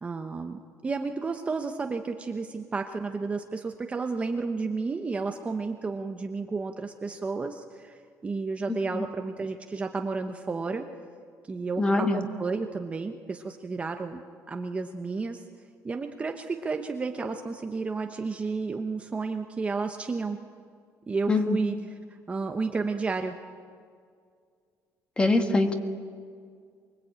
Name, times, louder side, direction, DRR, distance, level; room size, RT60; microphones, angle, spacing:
voice 1, 0.0-10.8 11.5-15.4 15.8-20.4 21.1-21.8 22.3-23.4, right 4 dB, 20° right, 5 dB, 1.0 m, -32 dB
voice 2, 11.8-12.2 21.3-21.6 25.2-25.7, left 2 dB, 15° left, 6 dB, 1.9 m, -23 dB
24.0 x 23.0 x 8.8 m, 2.1 s
cardioid pair, 160°, 7 cm